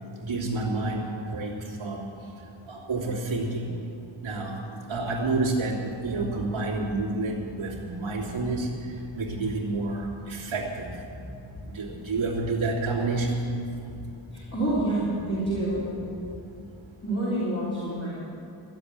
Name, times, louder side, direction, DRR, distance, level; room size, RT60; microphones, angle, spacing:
voice 1, 0.2-2.1 2.7-3.7 4.2-4.6 4.9-8.7 9.1-11.0 11.7-13.4, right 3 dB, 70° right, -3 dB, 2.8 m, -29 dB
sound 1, 5.7-16.5, left 1 dB, 55° left, 2.5 m, -45 dB
voice 2, 14.3-15.9 17.0-18.1, right 1 dB, 30° left, -10 dB, 4.1 m, -27 dB
14.5 x 7.9 x 9.9 m, 2.6 s
wide cardioid pair, 130°, 48 cm